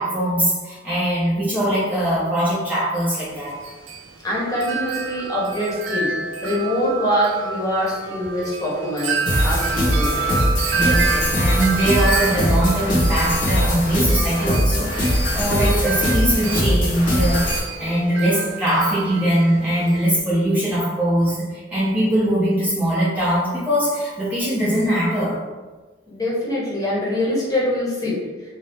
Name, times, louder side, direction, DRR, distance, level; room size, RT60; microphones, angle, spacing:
voice 1, 0.0-3.6 10.7-25.4, right 1 dB, 10° right, -9 dB, 0.6 m, -21 dB
Wind chime, 3.3-20.2, right 4 dB, 90° right, 0.4 m, -28 dB
voice 2, 4.2-6.1 6.4-9.2 9.4-10.2 26.1-28.2, left 1 dB, 20° left, -7 dB, 0.9 m, -23 dB
sound 1, 9.2-17.6, equal, 45° left, 0.8 m, -21 dB
2.6 x 2.3 x 3.3 m, 1.3 s
head